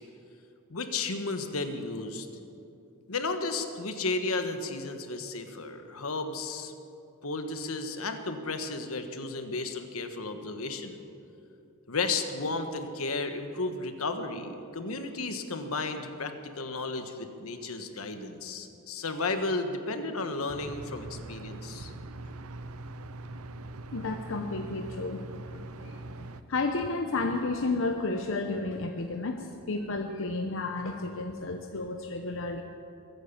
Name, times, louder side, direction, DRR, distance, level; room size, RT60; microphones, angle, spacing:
voice 1, 0.7-2.3 3.1-6.7 7.2-11.0 11.9-21.9, left 3 dB, 80° left, 7 dB, 1.3 m, -33 dB
sound 1, 20.5-26.4, right 2 dB, 90° right, 0.6 m, -42 dB
voice 2, 23.9-25.2 25.5-32.6, left 3 dB, 65° left, 4 dB, 0.8 m, -32 dB
21.5 x 9.3 x 7.2 m, 2.7 s
head